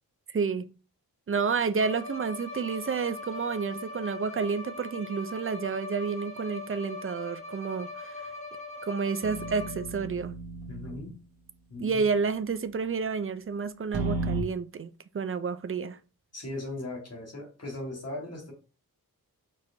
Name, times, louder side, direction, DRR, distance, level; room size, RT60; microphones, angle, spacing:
voice 1, 0.3-0.7 1.3-8.3 8.8-10.4 11.8-16.0, right 5 dB, 35° right, 0.4 m, -30 dB
Bowed string instrument, 1.8-10.0, left 3 dB, 20° left, 1.0 m, -41 dB
sound 1, 9.2-11.1 13.9-14.4, right 2 dB, 75° right, 1.0 m, -33 dB
voice 2, 10.7-11.2 11.7-12.1 16.3-18.5, left 2 dB, 40° left, 1.6 m, -38 dB
4.6 x 4.3 x 2.6 m
wide cardioid pair, 110°, 37 cm